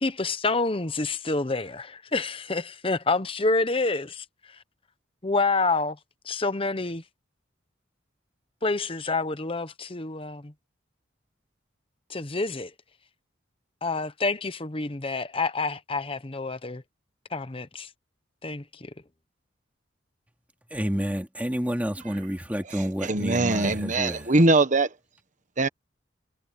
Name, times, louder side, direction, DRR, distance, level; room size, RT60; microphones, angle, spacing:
voice 1, 0.0-4.2 5.2-6.0 6.2-7.0 8.6-10.5 12.1-12.7 13.8-16.8 17.3-17.9 18.4-18.9, left 3 dB, 30° left, 1.0 m, -28 dB
voice 2, 20.7-24.3, equal, 10° right, 2.6 m, -29 dB
voice 3, 23.0-24.9 25.6-25.7, right 2 dB, 40° right, 1.3 m, -21 dB
head